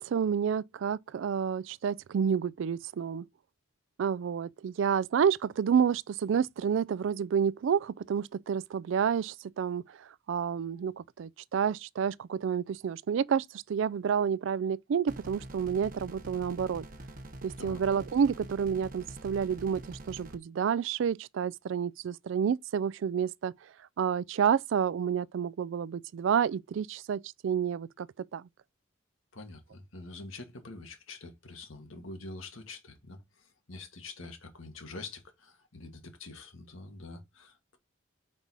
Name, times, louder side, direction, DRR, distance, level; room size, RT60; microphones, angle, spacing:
voice 1, 0.0-3.3 4.0-16.8 17.4-23.5 24.0-28.1 28.3-28.5, right 7 dB, 70° right, 0.3 m, -29 dB
sound 1, 15.1-20.4, right 1 dB, 40° right, 0.9 m, -45 dB
voice 2, 29.3-37.8, left 3 dB, 85° left, 1.5 m, -46 dB
5.3 x 4.7 x 4.0 m
head